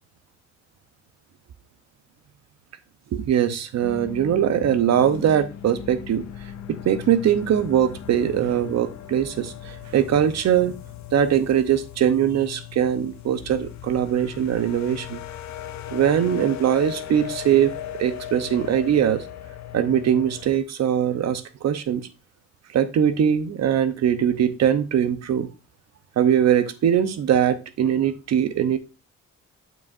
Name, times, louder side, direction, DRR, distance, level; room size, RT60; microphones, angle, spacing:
voice 1, 3.1-6.2 6.7-10.7 11.1-15.2 15.9-19.2 19.7-22.1 22.7-25.5 26.2-28.8, right 9 dB, 60° right, 0.8 m, -21 dB
sound 1, 3.8-20.6, left 11 dB, 65° left, 0.7 m, -38 dB
7.0 x 6.1 x 2.5 m
cardioid pair, 90°, 30 cm